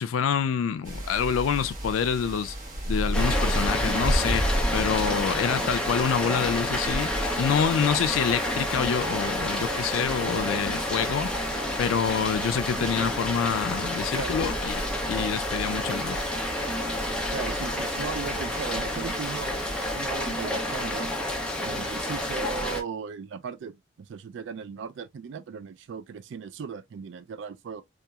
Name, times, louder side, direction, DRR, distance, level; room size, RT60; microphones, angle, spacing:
voice 1, 0.0-2.6 2.9-7.1 7.4-11.3 11.8-14.8 15.1-16.2, left 7 dB, 80° left, 0.3 m, -27 dB
sound 1, 0.8-20.1, right 1 dB, 40° right, 0.8 m, -34 dB
Rain, 3.1-22.8, left 1 dB, 5° left, 0.4 m, -29 dB
voice 2, 17.3-19.6 19.9-21.1 21.6-27.8, right 6 dB, 60° right, 0.3 m, -37 dB
2.9 x 2.3 x 2.2 m
head